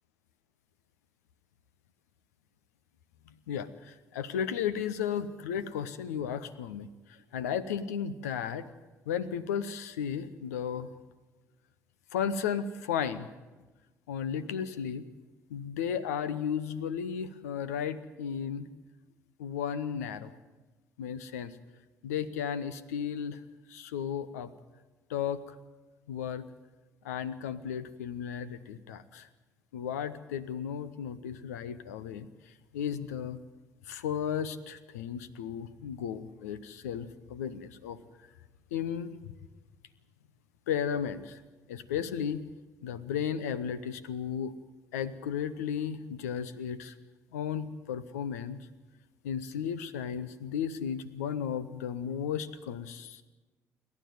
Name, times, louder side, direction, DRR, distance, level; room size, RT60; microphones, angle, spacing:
voice 1, 3.3-8.7 9.1-10.9 12.1-13.3 14.1-15.0 15.5-18.7 19.4-20.3 21.0-21.6 22.0-23.4 23.7-24.5 25.1-25.4 26.1-26.5 27.0-29.3 29.7-32.3 32.7-33.4 33.9-38.0 38.7-39.1 40.7-41.4 41.7-42.4 42.8-44.5 44.9-46.9 47.3-48.7 49.2-53.2, left 8 dB, 70° left, 14 dB, 0.9 m, -34 dB
28.5 x 12.0 x 9.3 m, 1.2 s
figure-of-eight pair, 50°, 9 cm